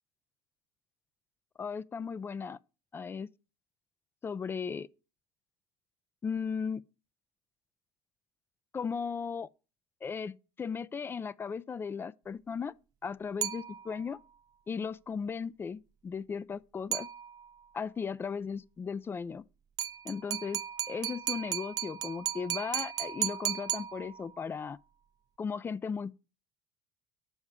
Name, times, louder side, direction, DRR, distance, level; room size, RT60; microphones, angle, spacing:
voice 1, 1.6-2.6 2.9-3.3 4.2-4.9 6.2-6.8 8.7-9.5 10.0-12.7 13.0-14.2 14.7-17.1 17.7-19.4 20.0-20.6 20.9-24.8 25.4-26.1, left 6 dB, 20° left, 0.3 m, -36 dB
sound 1, 13.4-14.2 16.9-17.7 19.8-24.5, right 11 dB, 40° right, 0.5 m, -36 dB
7.1 x 4.8 x 5.5 m
supercardioid pair, 100°, 10 cm